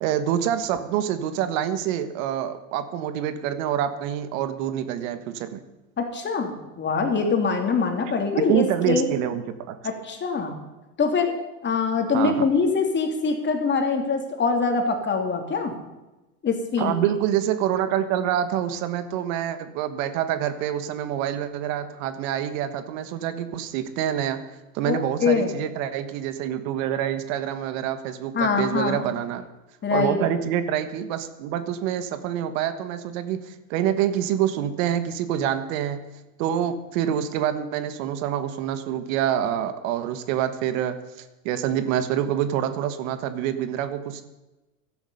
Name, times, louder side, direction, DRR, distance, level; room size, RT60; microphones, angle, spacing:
voice 1, 0.0-5.6 8.5-9.8 12.1-12.4 16.8-24.4 24.7-29.5 29.9-36.0 36.4-44.2, right 10 dB, 65° right, 10 dB, 1.5 m, -26 dB
voice 2, 6.0-9.1 9.8-10.6 11.0-11.3 11.6-15.7 16.4-17.0 24.8-25.5 28.3-29.0 29.8-30.2, left 5 dB, 25° left, 4 dB, 2.8 m, -24 dB
16.0 x 12.0 x 5.5 m, 1.0 s
supercardioid pair, 120°, 43 cm